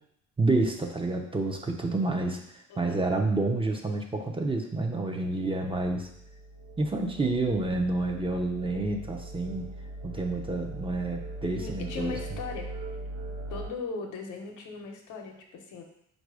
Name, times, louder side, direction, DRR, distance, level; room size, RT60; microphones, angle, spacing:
voice 1, 0.4-2.4 2.8-6.1 6.8-9.7 10.0-12.2, right 2 dB, 15° right, 2 dB, 0.6 m, -29 dB
voice 2, 2.7-3.0 11.5-12.7 13.5-15.8, left 4 dB, 85° left, 2 dB, 0.8 m, -38 dB
sound 1, 5.6-13.7, right 2 dB, 85° right, 0.9 m, -40 dB
4.1 x 2.6 x 4.7 m, 0.72 s
cardioid pair, 90°, 30 cm